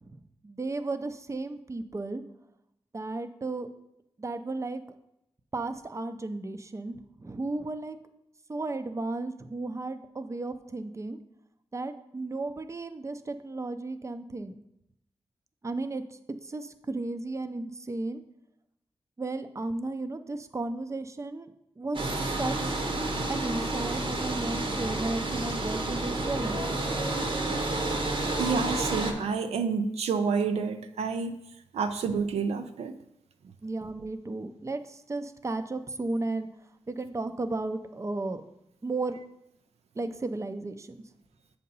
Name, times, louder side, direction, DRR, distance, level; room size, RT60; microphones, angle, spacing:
voice 1, 0.0-2.2 2.9-3.7 4.2-4.8 5.5-8.0 8.5-11.2 11.7-14.6 15.6-16.0 16.4-18.2 19.2-21.5 21.8-22.8 23.3-26.6 33.6-36.5 36.9-38.4 38.8-39.2 40.0-41.0, right 2 dB, 30° right, 9 dB, 0.5 m, -34 dB
sound 1, 21.9-29.1, right 2 dB, 55° right, 0.9 m, -30 dB
voice 2, 28.4-31.4 31.7-32.9, right 5 dB, 85° right, 7 dB, 0.4 m, -29 dB
7.4 x 2.8 x 5.4 m, 0.83 s
cardioid pair, 45°, 10 cm